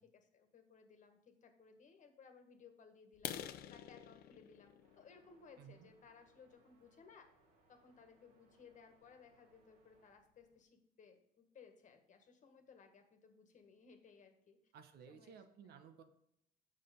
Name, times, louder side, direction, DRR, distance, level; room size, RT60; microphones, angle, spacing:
voice 1, 0.0-7.3 7.7-14.6 15.1-15.4, left 5 dB, 50° left, 6 dB, 1.5 m, -62 dB
sound 1, 3.1-6.9 7.4-7.6 8.1-8.2 8.6-8.8 9.1-9.2 9.6-9.7 9.9-10.4, left 11 dB, 65° left, 0.6 m, -49 dB
sound 2, 4.8-10.1, right 3 dB, 90° right, 2.3 m, -74 dB
voice 2, 5.6-5.9 14.7-16.0, right 7 dB, 70° right, 8 dB, 1.1 m, -57 dB
7.6 x 6.5 x 5.1 m, 0.76 s
cardioid pair, 110°, 17 cm